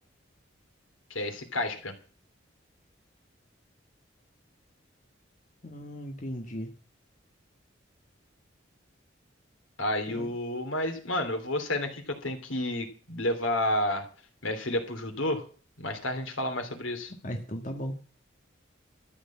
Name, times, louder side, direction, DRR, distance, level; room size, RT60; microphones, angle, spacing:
voice 1, 1.1-1.9 9.8-14.1 14.4-15.4 15.8-17.1, left 1 dB, 85° left, 5 dB, 3.1 m, -30 dB
voice 2, 5.6-6.7 10.1-10.3 17.2-17.9, equal, 40° left, 3 dB, 1.5 m, -36 dB
13.5 x 6.9 x 8.5 m, 0.39 s
head